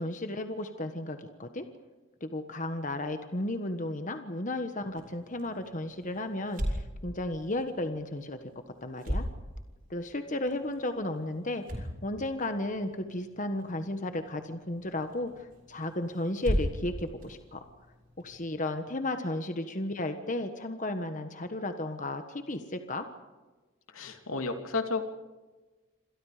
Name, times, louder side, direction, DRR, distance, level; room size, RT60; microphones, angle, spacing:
voice 1, 0.0-1.7 2.2-8.4 8.8-9.2 9.9-17.6 18.2-23.1, left 1 dB, 35° left, 7 dB, 1.4 m, -34 dB
sound 1, 4.8-18.4, equal, 40° right, 5.4 m, -39 dB
voice 2, 23.9-25.0, left 3 dB, 85° left, 5 dB, 2.9 m, -32 dB
28.5 x 26.5 x 5.0 m, 1.2 s
head